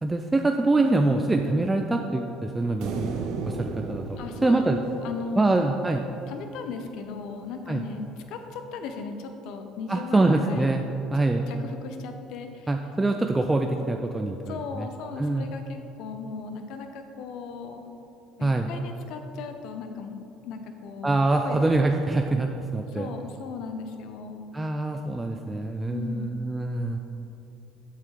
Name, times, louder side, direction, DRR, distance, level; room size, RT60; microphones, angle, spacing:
voice 1, 0.0-3.2 3.5-4.8 5.4-6.0 7.7-7.8 9.9-10.8 11.1-11.5 12.7-14.9 15.2-15.5 18.4-18.7 21.0-23.1 24.5-27.0, right 2 dB, 15° right, 4 dB, 0.5 m, -24 dB
sound 1, 2.8-6.2, right 4 dB, 65° right, 0.7 m, -35 dB
voice 2, 4.2-5.7 6.3-10.7 11.5-12.7 14.5-17.8 18.4-20.2 20.4-21.6 22.9-24.6 25.9-26.4, left 5 dB, 65° left, 6 dB, 0.7 m, -37 dB
7.4 x 5.6 x 4.8 m, 2.8 s
hypercardioid pair, 65°, 0 cm